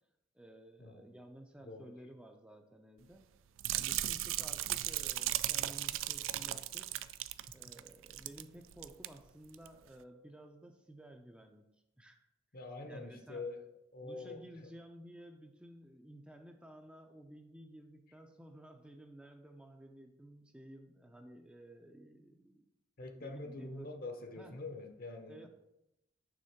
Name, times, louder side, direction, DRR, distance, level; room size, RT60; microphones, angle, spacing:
voice 1, 0.3-3.3 3.7-7.0 7.5-11.6 12.0-12.3 12.9-13.5 14.0-22.7 23.0-23.9 24.3-24.6 25.3-25.5, right 1 dB, 5° right, 4 dB, 0.4 m, -54 dB
sound 1, 3.6-8.5 8.7-9.1 9.5-9.7, right 14 dB, 80° right, 0.3 m, -36 dB
voice 2, 12.5-14.7 23.0-25.5, left 3 dB, 50° left, 6 dB, 0.8 m, -45 dB
6.3 x 3.5 x 5.7 m, 0.86 s
head